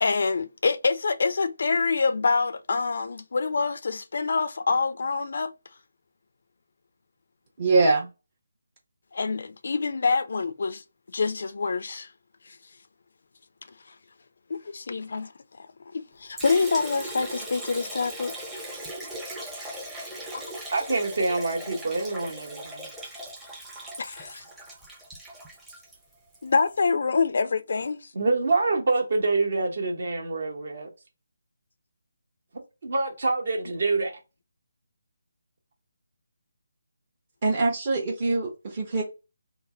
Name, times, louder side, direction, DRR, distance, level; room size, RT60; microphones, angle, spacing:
voice 1, 0.0-5.5 9.1-10.8 11.1-12.1 12.4-12.6 13.9-14.0 14.5-15.7 15.9-18.3 20.3-20.4 24.0-24.4 26.4-28.1, left 4 dB, 60° left, 0.4 m, -26 dB
voice 2, 7.6-8.1 37.4-39.0, right 3 dB, 40° right, 0.9 m, -23 dB
Liquid, 16.4-26.5, right 1 dB, 5° right, 0.7 m, -39 dB
voice 3, 20.7-22.9 28.1-30.9 32.8-34.2, right 3 dB, 55° right, 1.2 m, -26 dB
3.2 x 2.1 x 3.7 m
figure-of-eight pair, 155°, 0 cm